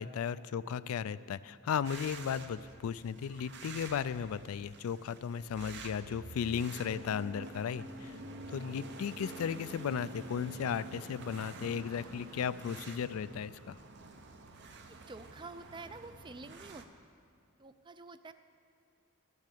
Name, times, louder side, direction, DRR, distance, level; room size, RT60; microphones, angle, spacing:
voice 1, 0.0-8.1 8.5-13.8, left 7 dB, 85° left, 16 dB, 0.3 m, -35 dB
sound 1, 1.8-16.8, right 3 dB, 55° right, 0.8 m, -48 dB
Car passing by, 4.1-13.8, right 3 dB, 90° right, 0.9 m, -61 dB
voice 2, 14.9-17.1 17.6-18.3, right 3 dB, 20° right, 11 dB, 0.4 m, -48 dB
13.0 x 6.5 x 8.4 m, 2.3 s
head